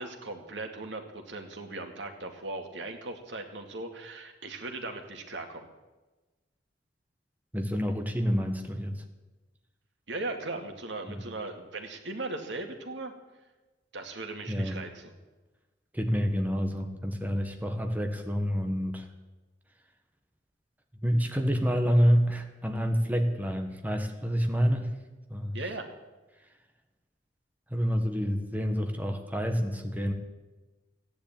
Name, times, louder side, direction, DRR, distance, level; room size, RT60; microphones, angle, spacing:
voice 1, 0.0-5.7 10.1-13.1 13.9-15.1 25.5-25.9, right 2 dB, 80° right, 4 dB, 2.3 m, -38 dB
voice 2, 7.5-9.0 11.1-11.2 14.5-14.8 15.9-19.1 21.0-24.9 25.3-25.6 27.7-30.1, equal, 10° right, 4 dB, 1.4 m, -28 dB
15.5 x 10.5 x 8.9 m, 1.2 s
head